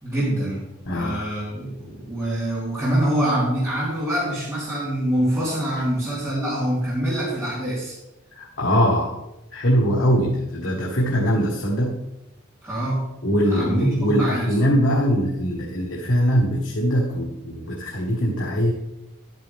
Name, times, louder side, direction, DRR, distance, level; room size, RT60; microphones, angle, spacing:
voice 1, 0.0-8.0 12.6-13.0 13.5-14.5, right 1 dB, 15° right, -10 dB, 3.4 m, -25 dB
voice 2, 0.8-1.2 8.3-9.2 9.5-12.0 13.2-18.7, equal, 65° left, -3 dB, 1.5 m, -22 dB
11.5 x 8.7 x 3.5 m, 0.92 s
head